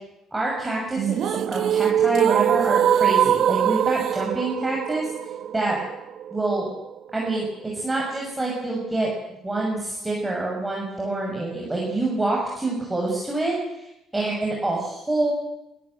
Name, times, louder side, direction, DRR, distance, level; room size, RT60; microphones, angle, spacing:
voice 1, 0.3-5.1 5.5-5.8 6.3-6.7 7.1-7.5 7.7-9.1 9.4-15.3, right 2 dB, 15° right, -2 dB, 6.5 m, -26 dB
sound 1, 1.0-7.0, right 10 dB, 65° right, 0.7 m, -22 dB
24.5 x 13.5 x 7.9 m, 0.89 s
hypercardioid pair, 55°, 0 cm